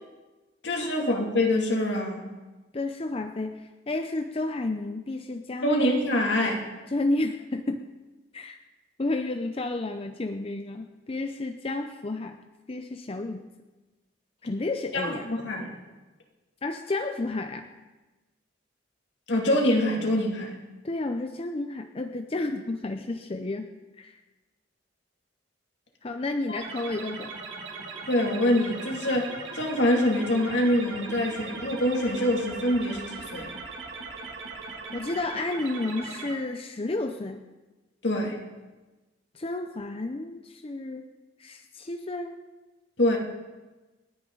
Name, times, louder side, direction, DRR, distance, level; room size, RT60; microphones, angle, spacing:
voice 1, 0.6-2.3 5.6-6.6 14.9-15.7 19.3-20.6 26.5-26.6 28.1-33.5 38.0-38.4 43.0-43.2, left 1 dB, 70° left, 0 dB, 2.6 m, -25 dB
voice 2, 2.7-5.9 6.9-7.9 8.3-8.6 9.0-12.4 12.7-13.5 14.4-15.4 16.6-17.7 20.8-23.7 24.0-24.2 26.0-27.3 34.9-37.5 39.3-41.1 41.4-42.4, left 2 dB, 30° left, 6 dB, 0.6 m, -31 dB
sound 1, 26.5-36.3, right 4 dB, 80° right, 2.6 m, -39 dB
28.5 x 9.6 x 3.9 m, 1.2 s
head